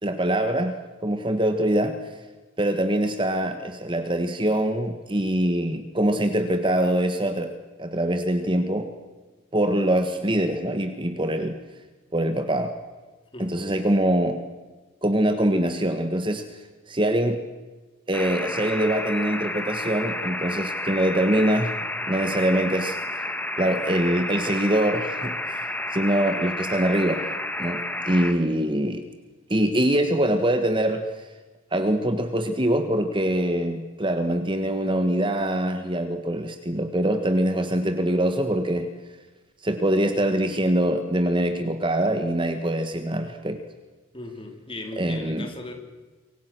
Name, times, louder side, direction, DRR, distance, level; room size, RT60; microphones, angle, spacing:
voice 1, 0.0-0.7 1.0-1.9 2.6-7.5 7.8-8.9 9.5-11.5 12.1-12.7 13.4-14.4 15.0-16.4 16.9-17.4 18.1-21.8 22.1-23.2 23.6-25.6 25.9-27.3 27.6-29.0 29.5-31.2 31.7-38.9 39.6-43.6 45.0-45.5, right 1 dB, 25° right, 8 dB, 1.6 m, -24 dB
voice 2, 13.3-13.7 44.1-45.7, left 2 dB, 25° left, 4 dB, 3.9 m, -38 dB
sound 1, 18.1-28.3, left 1 dB, 10° left, 2.1 m, -31 dB
27.0 x 24.5 x 6.3 m, 1.3 s
head